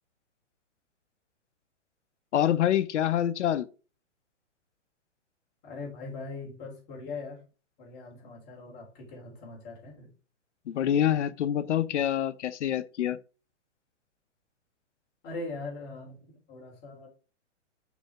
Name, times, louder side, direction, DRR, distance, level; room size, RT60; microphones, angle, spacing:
voice 1, 2.3-3.7 10.7-13.2, left 10 dB, 70° left, 0.7 m, -26 dB
voice 2, 5.6-7.4 7.8-10.1 15.2-17.1, left 3 dB, 30° left, 3.5 m, -41 dB
6.2 x 5.4 x 3.5 m
hypercardioid pair, 140°, 37 cm